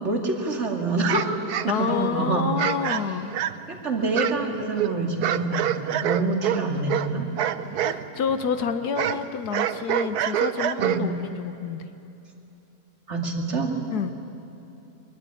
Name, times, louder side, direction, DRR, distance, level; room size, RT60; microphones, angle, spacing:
voice 1, 0.0-2.5 3.7-7.3 10.8-11.1 13.1-13.8, right 3 dB, 45° right, 2 dB, 2.8 m, -26 dB
sound 1, 1.0-2.1 2.6-3.7 4.1-8.0 8.3-11.3, right 10 dB, 80° right, 1.3 m, -27 dB
voice 2, 1.7-3.3 7.8-11.9 13.9-14.1, left 6 dB, 80° left, 10 dB, 1.4 m, -28 dB
24.0 x 22.5 x 9.9 m, 2.9 s
omnidirectional pair, 1.7 m